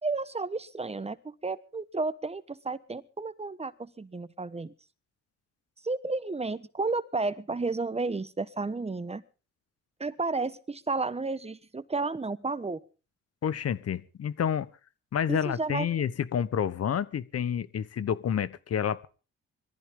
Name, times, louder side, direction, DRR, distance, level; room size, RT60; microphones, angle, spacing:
voice 1, 0.0-4.7 5.8-9.2 10.0-12.8 15.3-15.9, right 3 dB, 20° right, 15 dB, 1.2 m, -32 dB
voice 2, 13.4-14.7 15.1-19.1, left 8 dB, 55° left, 17 dB, 1.2 m, -29 dB
22.0 x 14.5 x 3.8 m, 0.37 s
cardioid pair, 90°, 30 cm